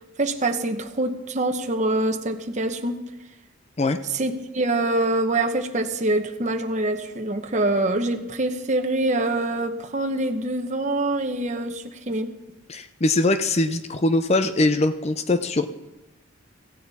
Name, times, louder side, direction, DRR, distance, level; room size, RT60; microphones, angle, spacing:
voice 1, 0.2-3.0 4.1-12.3, right 2 dB, 35° right, 5 dB, 1.0 m, -25 dB
voice 2, 12.7-15.7, left 2 dB, 30° left, 10 dB, 0.6 m, -22 dB
17.0 x 15.5 x 4.2 m, 1.0 s
head